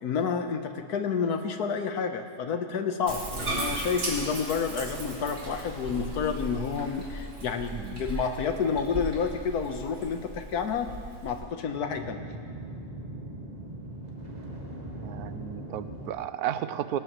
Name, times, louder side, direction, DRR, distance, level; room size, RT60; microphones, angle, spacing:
voice 1, 0.0-3.2 3.5-10.9 11.2-12.3, left 6 dB, 85° left, 7 dB, 1.5 m, -29 dB
Bathtub (filling or washing), 3.1-11.4, right 1 dB, 45° right, 2.9 m, -36 dB
voice 2, 7.7-8.1 15.0-17.0, right 10 dB, 85° right, 12 dB, 1.1 m, -33 dB
sound 1, 11.2-16.1, right 1 dB, 30° right, 1.6 m, -40 dB
18.5 x 17.5 x 3.0 m, 2.3 s
omnidirectional pair, 1.6 m